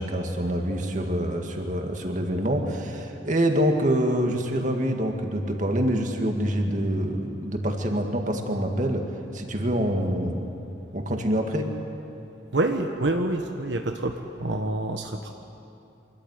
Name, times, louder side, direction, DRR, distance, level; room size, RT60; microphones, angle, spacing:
voice 1, 0.0-9.0 9.3-10.5 10.9-11.7, equal, 45° right, 3 dB, 2.0 m, -26 dB
voice 2, 12.5-15.3, right 2 dB, 75° right, 4 dB, 1.2 m, -27 dB
24.5 x 14.0 x 9.8 m, 2.7 s
head